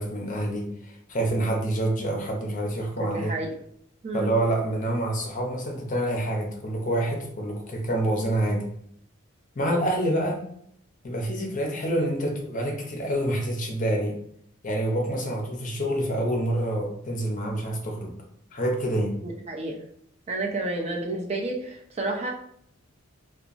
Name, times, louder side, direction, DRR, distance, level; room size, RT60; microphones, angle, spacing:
voice 1, 0.0-3.3 4.1-8.7 9.6-10.4 11.0-14.2 14.6-18.2 18.5-19.2, right 1 dB, 40° left, 1 dB, 0.6 m, -27 dB
voice 2, 3.1-3.5 4.0-4.3 19.2-19.8 20.3-22.3, right 2 dB, 30° right, 1 dB, 0.4 m, -30 dB
2.8 x 2.2 x 2.4 m, 0.67 s
head